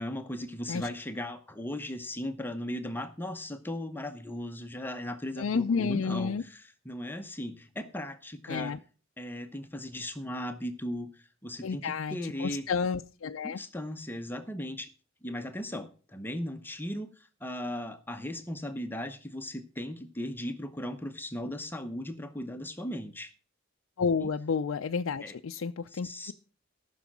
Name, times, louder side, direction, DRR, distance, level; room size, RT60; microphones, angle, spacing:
voice 1, 0.0-8.7 9.2-12.7 13.4-14.9 15.2-23.3 24.2-24.3 25.2-25.3 25.9-26.3, left 1 dB, 10° left, 7 dB, 0.8 m, -37 dB
voice 2, 5.4-6.4 8.5-8.8 11.6-13.6 24.0-26.3, left 5 dB, 70° left, 6 dB, 0.4 m, -31 dB
14.0 x 6.2 x 6.0 m, 0.38 s
head